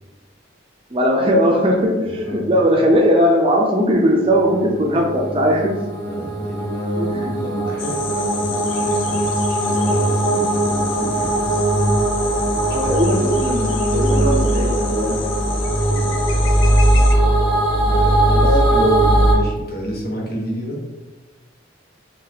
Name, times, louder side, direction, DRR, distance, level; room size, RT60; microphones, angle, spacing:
voice 1, 0.9-5.7 7.0-7.4 12.7-15.2 17.8-18.0 18.4-19.0, equal, 25° right, 0 dB, 0.5 m, -19 dB
voice 2, 2.1-2.7 6.0-9.2 9.5-11.9 12.7-13.0 15.9-16.1 17.8-20.8, equal, 50° left, -2 dB, 1.0 m, -30 dB
sound 1, 4.5-19.3, right 1 dB, 20° left, 1.5 m, -19 dB
sound 2, 7.8-17.2, left 6 dB, 75° left, 0.5 m, -31 dB
4.0 x 3.7 x 2.8 m, 1.2 s
head